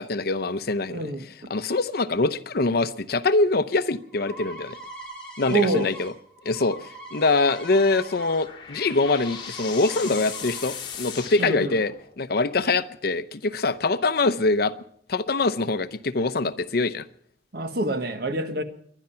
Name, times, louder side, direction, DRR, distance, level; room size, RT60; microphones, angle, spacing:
voice 1, 0.0-1.0 1.5-4.8 5.4-6.1 6.4-6.8 7.1-14.7 15.1-17.1, left 3 dB, 60° left, 0.7 m, -24 dB
voice 2, 0.9-1.5 5.5-5.9 11.4-11.7 17.5-18.6, right 2 dB, 60° right, 1.5 m, -26 dB
sound 1, 3.6-8.4 8.7-10.7, right 1 dB, 5° left, 5.8 m, -42 dB
sound 2, 8.0-12.3, left 7 dB, 30° left, 4.2 m, -38 dB
22.5 x 11.0 x 5.7 m
head